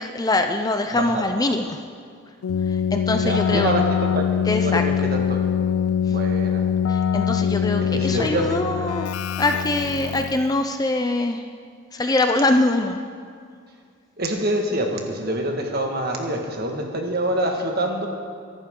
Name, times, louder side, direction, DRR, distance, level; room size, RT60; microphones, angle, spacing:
voice 1, 0.0-1.8 2.7-3.7 4.5-4.8 6.1-6.2 6.9-9.1 9.4-11.4 11.9-13.0, left 2 dB, 15° left, 6 dB, 0.5 m, -23 dB
voice 2, 0.9-1.2 3.2-5.5 6.1-6.7 7.9-8.9 14.2-18.1, right 1 dB, 45° right, 2 dB, 1.7 m, -26 dB
Keyboard (musical), 2.4-10.5, left 8 dB, 80° left, 0.3 m, -23 dB
23.0 x 11.5 x 3.8 m, 2.2 s
head